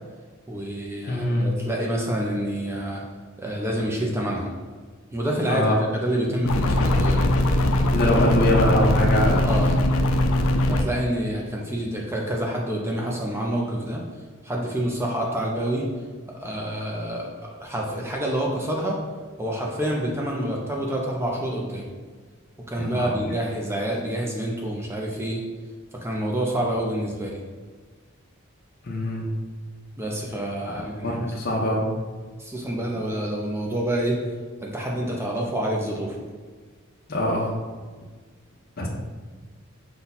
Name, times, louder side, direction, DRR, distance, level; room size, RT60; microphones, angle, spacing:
voice 1, 0.5-3.0 3.4-4.5 5.1-7.2 8.1-8.2 9.4-9.7 10.7-14.0 14.4-15.9 16.3-19.0 19.4-21.9 22.7-25.4 25.9-27.4 30.0-31.2 32.4-34.2 34.6-36.2, right 1 dB, 10° right, -1 dB, 0.5 m, -27 dB
voice 2, 1.1-1.5 5.5-5.8 7.9-9.5 22.8-23.1 28.8-29.3 30.7-31.8 37.1-37.5 38.8-38.9, left 1 dB, 50° left, -2 dB, 0.7 m, -23 dB
sound 1, 6.5-10.8, left 1 dB, 75° left, 0.4 m, -21 dB
5.5 x 2.3 x 4.0 m, 1.5 s
head